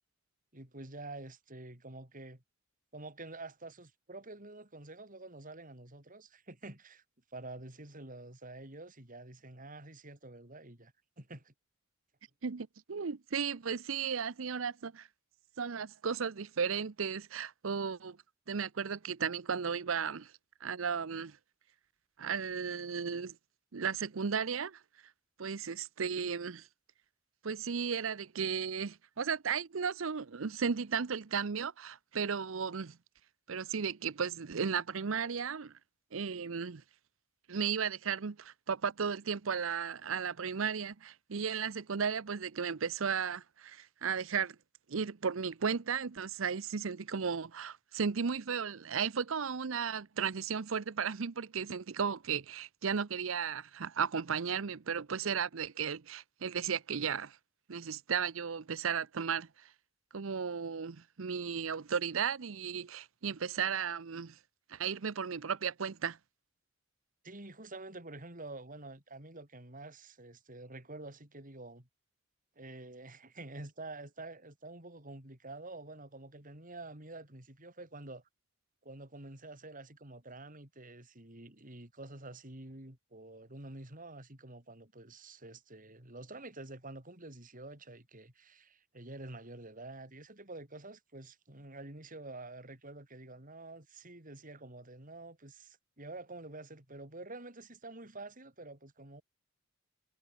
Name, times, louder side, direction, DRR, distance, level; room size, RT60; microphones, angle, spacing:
voice 1, 0.5-2.4 2.9-7.0 7.3-11.5 67.2-71.9 72.6-78.2 78.8-99.2, right 2 dB, 40° right, 4.5 m, -48 dB
voice 2, 12.4-15.1 15.6-18.2 18.5-20.3 20.6-21.4 22.2-23.4 23.7-24.8 25.4-26.7 27.4-33.0 33.5-35.7 36.1-36.8 37.5-44.6 44.9-57.4 57.7-59.5 60.1-64.3 64.7-66.2, right 6 dB, 75° right, 0.7 m, -35 dB
head